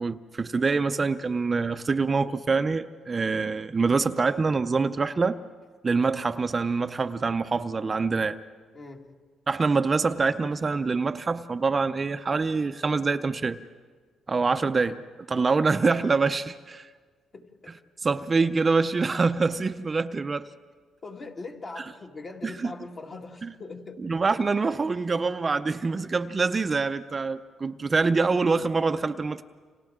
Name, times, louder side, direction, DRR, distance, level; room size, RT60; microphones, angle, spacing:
voice 1, 0.0-5.4 5.8-8.4 9.5-13.6 14.3-15.0 15.3-16.9 18.0-20.5 24.0-29.4, right 4 dB, 30° right, 0.5 m, -25 dB
voice 2, 8.7-9.1 17.3-17.7 21.0-24.0, left 3 dB, 40° left, 2.2 m, -41 dB
29.5 x 25.5 x 3.7 m
cardioid pair, 90°, 0 cm